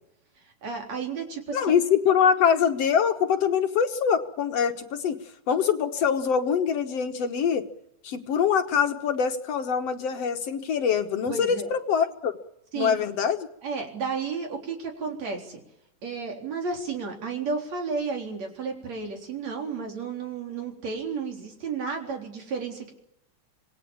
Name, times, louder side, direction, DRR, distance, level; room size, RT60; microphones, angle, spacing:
voice 1, 0.6-1.7 11.3-11.7 12.7-13.0 13.6-15.6 16.0-22.9, right 5 dB, 60° right, 3 dB, 4.9 m, -32 dB
voice 2, 1.5-5.2 5.5-7.6 8.0-12.3 12.8-13.5, left 7 dB, 60° left, 6 dB, 2.2 m, -24 dB
26.5 x 19.5 x 7.2 m, 0.79 s
omnidirectional pair, 3.4 m